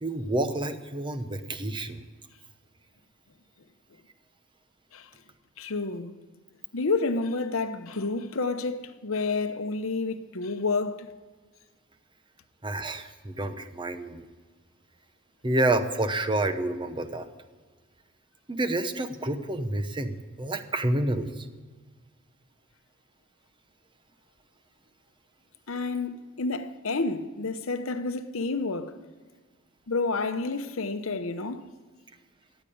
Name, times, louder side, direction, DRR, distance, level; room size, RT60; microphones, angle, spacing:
voice 1, 0.0-2.0 12.6-14.3 15.4-17.3 18.5-21.5, right 1 dB, 25° right, 0.9 m, -29 dB
voice 2, 5.6-6.1 6.7-11.1 25.7-29.0 29.9-31.7, left 3 dB, 70° left, 0.9 m, -29 dB
15.5 x 9.0 x 8.6 m
head